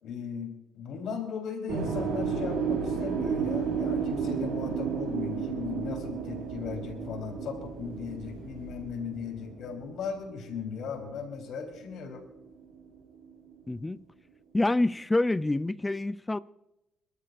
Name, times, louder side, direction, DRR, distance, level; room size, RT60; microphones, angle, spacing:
voice 1, 0.0-12.2, left 6 dB, 75° left, 3.8 m, -37 dB
sound 1, 1.7-11.8 12.1-13.7, right 6 dB, 75° right, 6.7 m, -33 dB
voice 2, 13.7-14.0 14.5-16.4, left 2 dB, 15° left, 0.5 m, -27 dB
28.0 x 12.5 x 2.5 m
cardioid pair, 90°, 0 cm